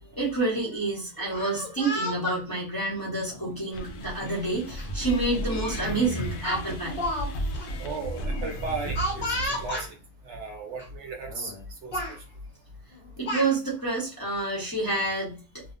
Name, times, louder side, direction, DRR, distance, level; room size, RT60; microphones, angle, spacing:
voice 1, 0.0-7.0 13.2-15.4, right 3 dB, 20° left, -6 dB, 0.7 m, -28 dB
Speech, 1.2-2.4 3.3-3.5 4.8-4.9 5.3-5.5 6.4-7.3 7.5-7.7 8.9-9.9 10.8-10.9 11.3-11.6 11.9-12.2 12.9-13.5, left 1 dB, 45° left, 1.0 m, -32 dB
sound 1, 3.7-9.7, equal, 80° left, 1.0 m, -34 dB
voice 2, 7.8-9.3 9.6-9.9 10.3-11.5 11.8-12.0, right 4 dB, 70° right, 3 dB, 0.8 m, -35 dB
2.6 x 2.0 x 2.5 m, 0.36 s
omnidirectional pair, 1.4 m